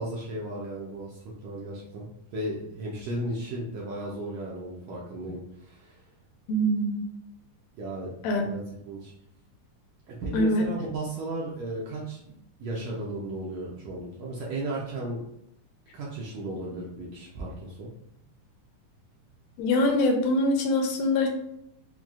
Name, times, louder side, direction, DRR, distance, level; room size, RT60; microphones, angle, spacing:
voice 1, 0.0-2.1 2.3-6.0 7.7-8.1 8.4-9.1 10.1-15.2 15.9-17.9, right 1 dB, 80° right, -4 dB, 1.5 m, -35 dB
voice 2, 6.5-6.9 8.2-8.4 10.3-10.7 19.6-21.3, left 1 dB, 80° left, 2 dB, 2.1 m, -23 dB
6.0 x 2.3 x 2.4 m, 0.76 s
omnidirectional pair, 3.9 m